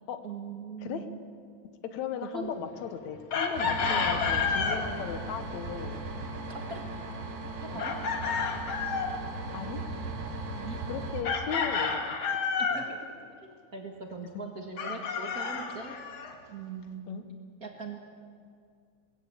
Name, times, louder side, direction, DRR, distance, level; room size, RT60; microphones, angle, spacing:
voice 1, 0.2-1.2 2.2-2.5 3.9-4.0 4.9-5.0 6.5-6.8 7.6-8.0 10.6-10.8 12.6-13.1 13.4-16.0 16.5-17.2 17.6-18.0, right 4 dB, 35° right, 1 dB, 1.8 m, -41 dB
voice 2, 1.9-6.0 7.7-7.8 9.5-9.8 10.9-12.2 12.7-12.8 17.1-17.2, left 8 dB, 75° left, 9 dB, 2.3 m, -37 dB
Chicken rooster, 3.3-4.8 7.8-9.1 11.2-12.9 14.8-16.3, left 5 dB, 50° left, 2.0 m, -30 dB
sound 1, 3.5-11.2, right 2 dB, 85° right, 3.7 m, -37 dB
20.0 x 15.5 x 8.4 m, 2.2 s
omnidirectional pair, 3.3 m